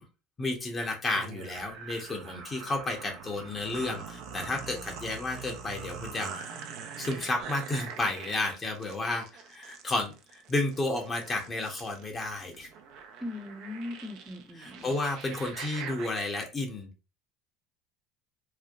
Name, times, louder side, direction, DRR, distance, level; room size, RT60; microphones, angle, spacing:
voice 1, 0.4-6.5 7.0-12.7 14.6-16.9, left 2 dB, 25° left, 0.9 m, -32 dB
sound 1, 1.1-16.1, right 6 dB, 65° right, 0.5 m, -43 dB
voice 2, 13.2-15.0, left 2 dB, 10° right, 0.8 m, -39 dB
3.2 x 2.1 x 2.5 m
supercardioid pair, 95°, 0 cm